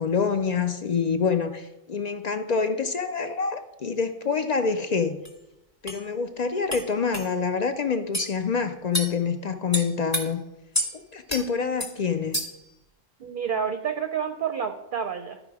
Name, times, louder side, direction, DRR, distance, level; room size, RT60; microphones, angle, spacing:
voice 1, 0.0-5.1 5.8-10.4 10.9-12.4, left 5 dB, 60° left, 9 dB, 0.4 m, -26 dB
sound 1, 5.3-5.4 5.9-6.0 6.7-6.8 7.1-7.3 8.1-8.3 8.9-9.1 9.7-10.2 10.7-10.9 11.3-11.4 11.8-11.9 12.3-12.6, equal, 15° left, 1.2 m, -28 dB
voice 2, 13.2-15.4, right 7 dB, 55° right, 7 dB, 0.6 m, -29 dB
12.0 x 5.0 x 4.8 m, 0.94 s
omnidirectional pair, 1.3 m